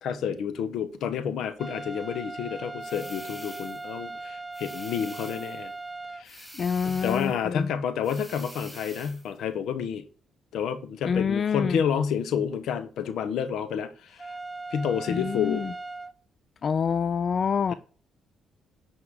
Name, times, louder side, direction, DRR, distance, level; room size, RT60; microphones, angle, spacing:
voice 1, 0.0-5.7 6.1-6.5 6.8-10.0 10.5-14.3 14.7-15.7, left 7 dB, 75° left, 1.0 m, -29 dB
sound 1, 1.6-6.2 14.2-16.1, right 3 dB, 15° right, 0.5 m, -38 dB
sound 2, 2.8-3.9 4.5-5.6 6.2-7.4 8.0-9.3, equal, 5° left, 1.6 m, -47 dB
voice 2, 6.5-7.7 11.0-11.8 15.1-15.7 16.6-17.7, left 6 dB, 50° left, 0.4 m, -27 dB
9.8 x 4.5 x 3.7 m
cardioid pair, 90°, 0 cm